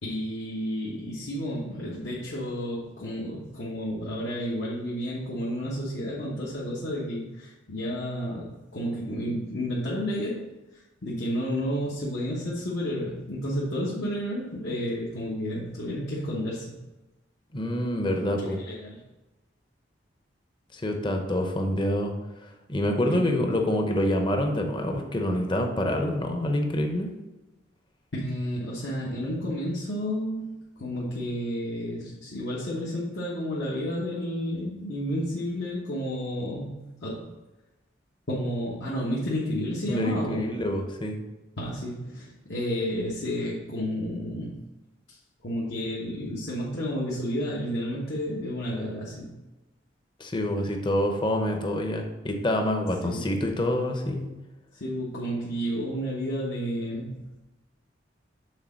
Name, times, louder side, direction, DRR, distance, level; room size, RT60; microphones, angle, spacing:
voice 1, 0.0-10.4 10.7-16.8 18.2-19.0 23.1-23.4 28.1-30.5 30.8-37.3 38.3-40.5 41.6-44.6 45.1-45.2 45.4-49.3 51.6-51.7 53.0-53.3 54.7-57.2, equal, 70° left, -6 dB, 1.2 m, -31 dB
voice 2, 17.5-18.6 20.7-22.1 22.7-27.1 39.9-41.2 50.2-54.3, left 1 dB, 25° left, 3 dB, 0.8 m, -26 dB
6.5 x 3.9 x 6.2 m, 1.1 s
head